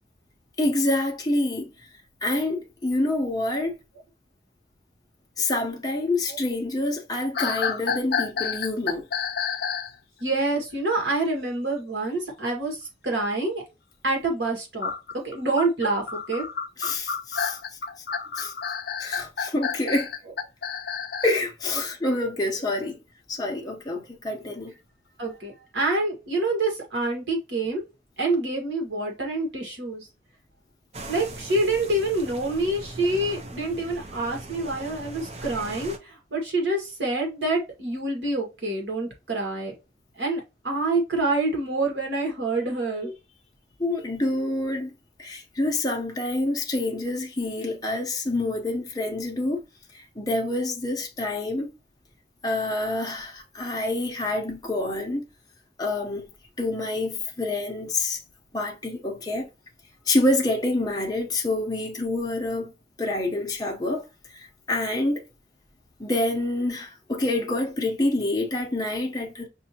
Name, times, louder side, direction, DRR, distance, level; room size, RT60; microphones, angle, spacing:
voice 1, 0.6-1.7 2.2-3.7 5.4-9.0 16.8-17.6 18.4-18.5 19.0-20.1 21.2-23.0 23.3-24.7 43.0-43.1 43.8-44.9 45.2-49.6 49.9-51.7 52.4-55.2 55.8-56.3 56.6-58.2 58.5-59.4 60.1-62.7 63.0-64.0 64.3-65.2 66.0-69.5, left 2 dB, 20° left, 0.8 m, -27 dB
sound 1, 7.3-9.9 14.8-21.4, left 6 dB, 55° left, 0.5 m, -30 dB
voice 2, 10.2-13.6 14.0-14.9 15.2-16.4 21.7-21.8 22.8-22.9 25.2-27.8 28.2-30.1 31.1-39.7 40.2-43.1, right 2 dB, 70° right, 1.9 m, -27 dB
sound 2, 30.9-36.0, right 2 dB, 35° right, 0.6 m, -40 dB
6.0 x 2.7 x 2.9 m
head